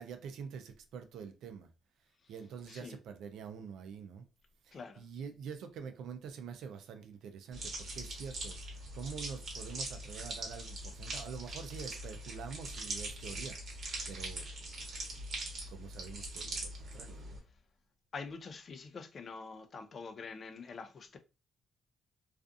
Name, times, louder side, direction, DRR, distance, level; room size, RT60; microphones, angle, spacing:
voice 1, 0.0-1.7 2.3-4.3 4.6-13.8 14.1-14.5 15.7-17.4, right 6 dB, 80° right, 0.4 m, -46 dB
sound 1, 7.5-17.4, right 2 dB, 60° right, 1.0 m, -42 dB
voice 2, 18.1-21.2, left 4 dB, 45° left, 0.4 m, -45 dB
2.4 x 2.4 x 2.5 m
cardioid pair, 90°, 0 cm